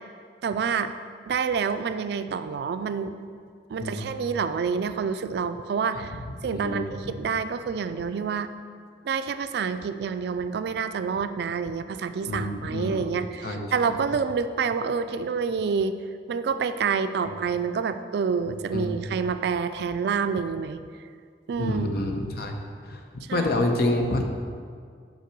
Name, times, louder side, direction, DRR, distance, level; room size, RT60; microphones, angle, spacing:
voice 1, 0.4-0.9 1.3-3.2 3.7-6.2 6.4-8.5 9.0-16.0 16.3-20.8 21.5-22.0 23.3-23.5, right 6 dB, 65° right, 11 dB, 0.3 m, -28 dB
voice 2, 3.8-4.1 5.9-6.0 6.4-6.9 12.3-13.0 13.4-14.0 18.7-18.9 21.6-22.6 22.8-23.0 23.3-24.2, left 1 dB, 60° left, 4 dB, 0.7 m, -27 dB
5.6 x 4.4 x 6.0 m, 2.1 s
head